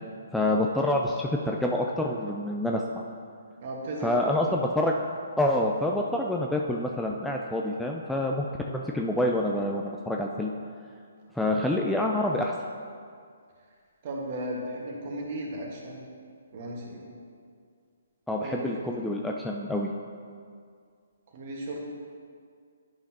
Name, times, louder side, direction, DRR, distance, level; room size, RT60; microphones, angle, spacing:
voice 1, 0.3-3.0 4.0-4.9 5.4-10.5 11.4-12.5 18.3-19.9, left 1 dB, 5° left, -1 dB, 0.3 m, -27 dB
voice 2, 3.6-4.4 14.0-16.0 16.5-17.0 18.4-18.9 21.3-21.8, right 1 dB, 40° right, -2 dB, 1.5 m, -35 dB
10.5 x 5.6 x 2.9 m, 2.2 s
figure-of-eight pair, 130°, 0 cm